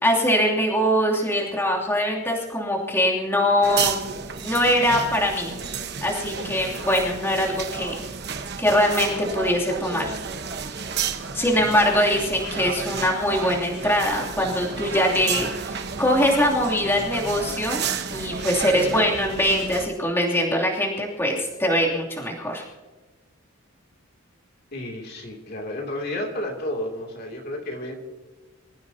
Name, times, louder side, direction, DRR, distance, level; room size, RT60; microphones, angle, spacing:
voice 1, 0.0-4.1 4.4-5.5 6.0-8.0 8.6-10.1 11.3-17.8 18.1-22.6, equal, 10° left, -3 dB, 2.8 m, -22 dB
sound 1, 3.6-19.9, right 5 dB, 50° right, 1.1 m, -31 dB
voice 2, 24.7-28.0, left 1 dB, 45° left, 1 dB, 2.8 m, -31 dB
26.0 x 15.0 x 2.8 m, 1.3 s
head